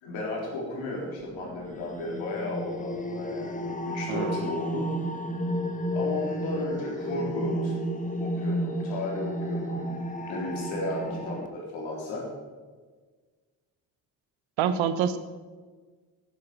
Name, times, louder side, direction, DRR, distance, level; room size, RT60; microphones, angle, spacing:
voice 1, 0.0-4.9 5.9-7.7 8.2-10.0 10.3-12.3, left 1 dB, 85° left, -3 dB, 4.0 m, -34 dB
sound 1, 1.3-11.5, equal, 15° left, 1.5 m, -32 dB
voice 2, 14.6-15.2, right 8 dB, 80° right, 11 dB, 1.1 m, -26 dB
11.0 x 10.5 x 6.1 m, 1.4 s
supercardioid pair, 50°, 46 cm